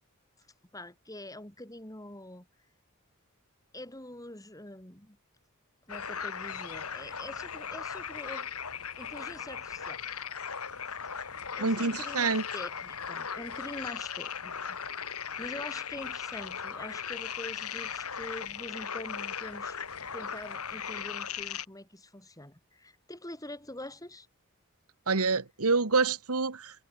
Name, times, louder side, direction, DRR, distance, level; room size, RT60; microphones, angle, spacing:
voice 1, 0.7-2.5 3.7-5.2 5.9-8.5 9.0-10.0 10.9-11.1 11.5-19.8 20.1-24.3, left 1 dB, 15° left, 7.8 m, -45 dB
sound 1, 5.9-21.6, left 7 dB, 80° left, 3.3 m, -38 dB
voice 2, 11.6-12.4 25.1-26.9, right 4 dB, 80° right, 1.5 m, -27 dB
open air
head